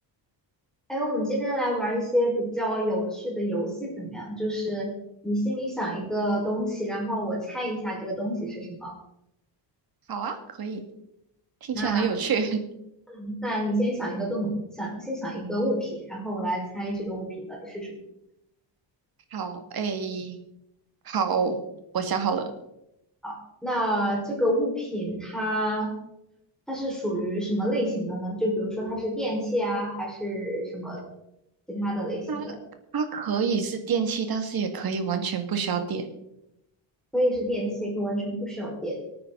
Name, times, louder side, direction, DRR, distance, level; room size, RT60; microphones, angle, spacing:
voice 1, 0.9-4.9 5.2-8.9 11.7-12.1 13.1-18.0 23.2-25.9 26.7-31.0 31.7-32.6 37.1-39.0, equal, ahead, -4 dB, 4.8 m, -28 dB
voice 2, 10.1-10.8 11.6-12.6 19.3-20.4 21.1-21.6 21.9-22.4 32.3-32.5 32.9-36.0, right 6 dB, 50° right, 6 dB, 2.2 m, -27 dB
25.0 x 9.4 x 4.0 m, 0.84 s
cardioid pair, 145°, 45 cm